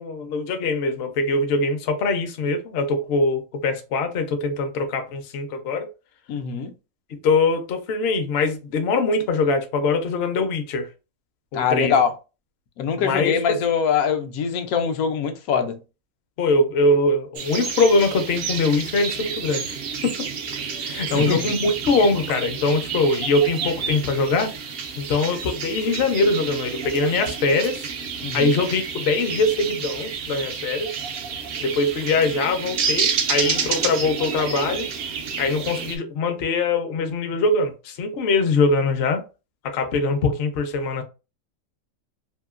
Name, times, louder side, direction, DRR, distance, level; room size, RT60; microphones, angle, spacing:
voice 1, 0.0-5.9 7.2-10.9 11.5-11.9 13.0-13.6 16.4-19.8 20.0-20.3 20.8-24.5 25.0-27.9 28.3-30.9 31.6-34.9 35.4-39.2 39.6-41.0, left 3 dB, 60° left, 0.7 m, -22 dB
voice 2, 6.3-6.7 11.5-12.1 12.8-15.8 21.1-21.6 28.2-28.6, left 6 dB, 80° left, 1.0 m, -23 dB
sound 1, 17.3-36.0, right 6 dB, 65° right, 0.6 m, -29 dB
2.8 x 2.6 x 2.4 m
omnidirectional pair, 1.5 m